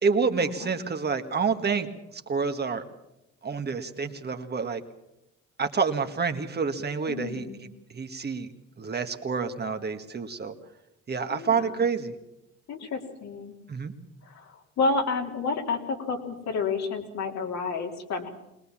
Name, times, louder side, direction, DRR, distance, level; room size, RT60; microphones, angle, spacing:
voice 1, 0.0-2.8 3.4-4.8 5.6-10.5 11.1-12.1 13.7-13.9, right 5 dB, 35° right, 6 dB, 1.7 m, -28 dB
voice 2, 7.1-7.6 11.3-11.9 12.7-13.5 14.2-18.3, left 4 dB, 65° left, 2 dB, 3.5 m, -30 dB
22.0 x 19.5 x 7.3 m, 0.90 s
cardioid pair, 85°, 30 cm